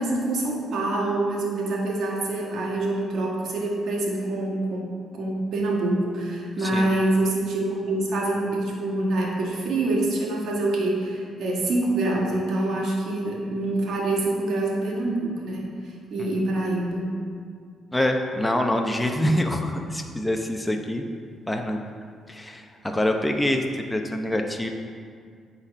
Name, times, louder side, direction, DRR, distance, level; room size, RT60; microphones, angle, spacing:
voice 1, 0.0-15.7 16.1-17.1, right 2 dB, 70° right, -2 dB, 1.7 m, -26 dB
voice 2, 17.9-21.0 21.5-21.8 22.3-24.7, left 1 dB, 10° left, 3 dB, 0.7 m, -25 dB
8.8 x 4.2 x 5.5 m, 2.1 s
cardioid pair, 90°, 0 cm